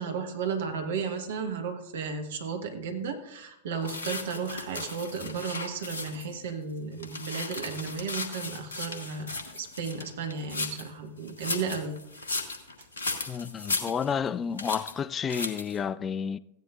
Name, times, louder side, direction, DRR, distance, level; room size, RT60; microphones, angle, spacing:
voice 1, 0.0-12.0, right 5 dB, 60° right, 1.3 m, -34 dB
sound 1, 3.9-6.4 6.8-10.9 11.3-14.3 14.6-14.9 15.3-15.8, left 3 dB, 70° left, 1.4 m, -36 dB
voice 2, 13.3-16.4, left 7 dB, 25° left, 0.3 m, -31 dB
15.5 x 10.5 x 2.5 m
figure-of-eight pair, 90°, 0 cm